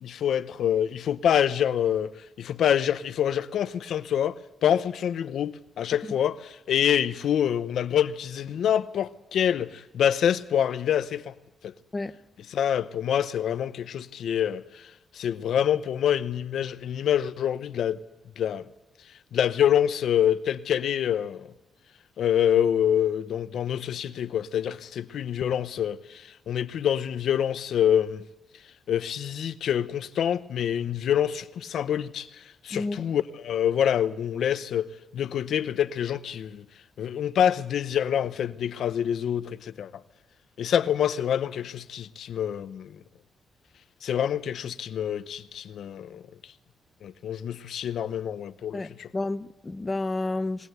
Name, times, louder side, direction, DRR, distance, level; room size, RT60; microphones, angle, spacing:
voice 1, 0.0-2.1 2.4-11.3 11.6-11.7 12.5-14.8 15.1-18.0 18.4-18.6 19.3-21.4 22.2-28.2 28.9-32.3 32.6-36.6 37.0-39.9 40.6-42.9 44.0-46.2 47.0-49.1, left 9 dB, 70° left, 0.8 m, -26 dB
voice 2, 32.7-33.1 48.7-50.7, left 2 dB, 20° left, 0.8 m, -31 dB
21.5 x 19.0 x 8.0 m
cardioid pair, 115°, 0 cm